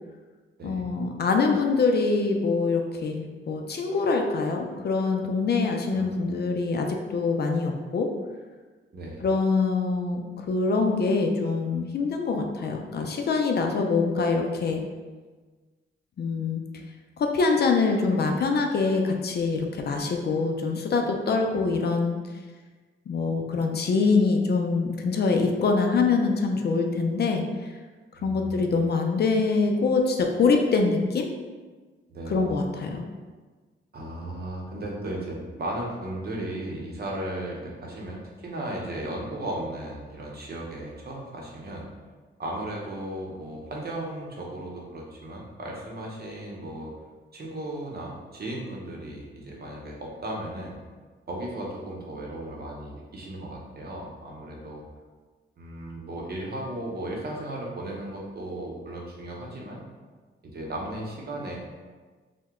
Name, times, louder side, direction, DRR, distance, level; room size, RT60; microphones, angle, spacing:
voice 1, 0.6-8.1 9.2-14.8 16.2-16.6 17.2-22.2 23.1-27.5 28.2-31.3 32.3-33.1, left 4 dB, 50° left, 3 dB, 0.4 m, -24 dB
voice 2, 5.9-6.2 8.9-9.3 21.5-21.6 28.2-28.8 32.1-32.5 33.9-41.9 42.4-46.9 47.3-50.8 51.3-54.8 55.6-59.8 60.5-61.6, right 1 dB, 50° right, -2 dB, 0.7 m, -35 dB
2.8 x 2.1 x 3.5 m, 1.4 s
cardioid pair, 85°, 21 cm